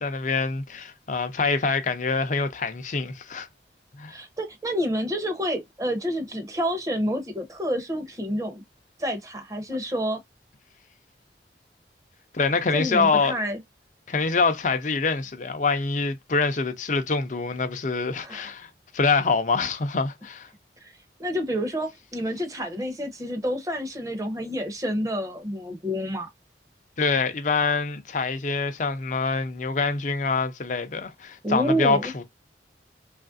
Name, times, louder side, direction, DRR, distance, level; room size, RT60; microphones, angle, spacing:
voice 1, 0.0-3.5 4.0-4.2 12.3-13.3 14.1-20.5 27.0-32.2, left 4 dB, 45° left, 0.5 m, -25 dB
voice 2, 4.1-8.6 9.0-10.2 12.7-13.6 18.2-18.5 20.8-20.9 21.2-26.3 31.4-32.1, equal, 20° right, 0.7 m, -28 dB
3.1 x 2.5 x 2.5 m
head